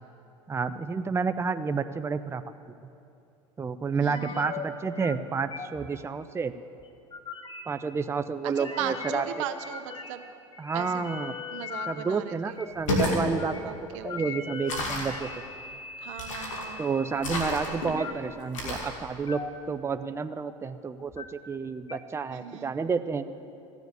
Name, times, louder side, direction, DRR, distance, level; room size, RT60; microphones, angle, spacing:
voice 1, 0.5-2.4 3.6-6.5 7.7-9.2 10.6-11.3 11.9-13.7 14.0-15.3 16.8-19.4 19.7-23.3, right 5 dB, 15° right, 10 dB, 0.5 m, -30 dB
voice 2, 4.0-4.5 8.4-10.2 10.7-11.0 11.5-12.6 13.7-14.4 16.0-16.8 17.1-17.9 22.3-22.7, right 10 dB, 75° right, 9 dB, 0.9 m, -38 dB
sound 1, 4.1-4.7 5.0-5.2 5.5-5.9 6.8-7.6 8.6-9.2 9.6-10.3 10.5-11.9 12.6-12.7 13.3-13.6 14.0-18.1 18.6-18.8 19.3-19.6 19.9-20.7 21.0-21.3 21.9-22.0, left 5 dB, 30° left, 1.3 m, -39 dB
sound 2, 12.7-13.2 14.7-15.2 16.2-16.7 17.2-17.9 18.5-18.9, left 1 dB, 90° left, 2.2 m, -30 dB
14.5 x 7.1 x 9.6 m, 2.6 s
hypercardioid pair, 85°, 16 cm